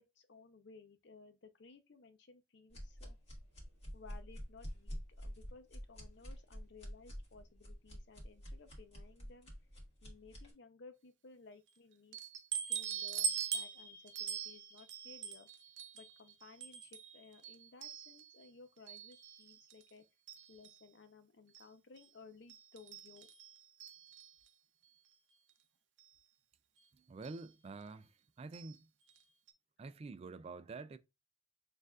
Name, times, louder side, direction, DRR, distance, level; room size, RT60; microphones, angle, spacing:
voice 1, 0.0-3.2 3.9-12.2 12.7-15.5 15.9-20.0 20.5-23.3, left 4 dB, 65° left, 0.7 m, -59 dB
sound 1, 2.7-10.5, equal, 35° left, 1.6 m, -48 dB
sound 2, 12.1-18.5 18.9-19.9 20.3-20.9 21.5-21.7 22.0-22.1 22.5-24.5 25.5-25.6 26.0-26.1 27.2-27.4 28.5-28.8 29.1-29.2 29.5-29.6, right 8 dB, 70° right, 0.6 m, -43 dB
voice 2, 26.9-28.9 29.8-31.0, right 3 dB, 35° right, 0.3 m, -48 dB
6.4 x 2.6 x 2.3 m
head